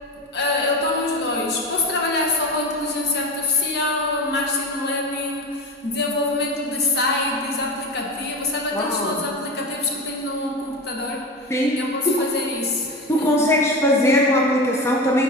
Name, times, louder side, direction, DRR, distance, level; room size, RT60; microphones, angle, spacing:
voice 1, 0.3-13.5, left 2 dB, 60° left, -1 dB, 0.8 m, -25 dB
voice 2, 8.7-9.2 11.5-12.2 13.1-15.2, left 1 dB, 15° left, -2 dB, 0.4 m, -19 dB
9.4 x 4.5 x 2.5 m, 2.8 s
head